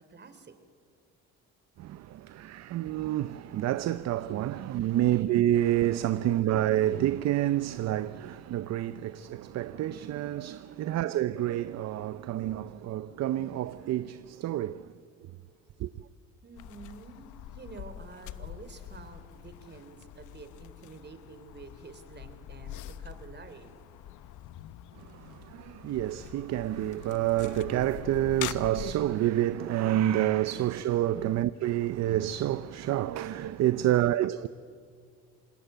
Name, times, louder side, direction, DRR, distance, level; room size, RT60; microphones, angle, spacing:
voice 1, 0.1-0.5 4.9-5.2 10.7-11.1 16.4-23.8 31.1-31.3 33.8-34.3, right 4 dB, 30° right, 3.1 m, -49 dB
voice 2, 1.8-14.9 15.8-15.9 25.0-34.5, right 13 dB, 55° right, 0.7 m, -28 dB
sound 1, 16.6-29.0, left 12 dB, 65° left, 1.1 m, -44 dB
26.5 x 20.0 x 9.1 m
cardioid pair, 95°, 32 cm